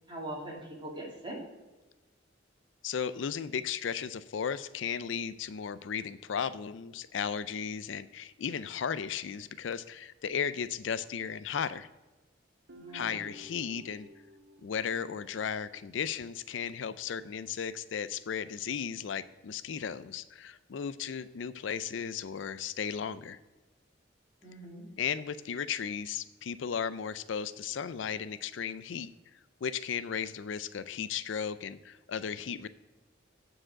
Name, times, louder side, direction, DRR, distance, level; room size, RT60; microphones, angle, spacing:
voice 1, 0.1-1.4 12.7-13.2 24.4-24.8, right 1 dB, 25° right, -2 dB, 2.5 m, -41 dB
voice 2, 2.8-11.9 12.9-14.1 14.6-23.4 25.0-29.1 29.6-32.7, left 7 dB, 75° left, 15 dB, 0.4 m, -35 dB
Guitar, 12.7-16.0, equal, 65° right, 1.0 m, -53 dB
8.8 x 4.8 x 7.5 m, 1.1 s
head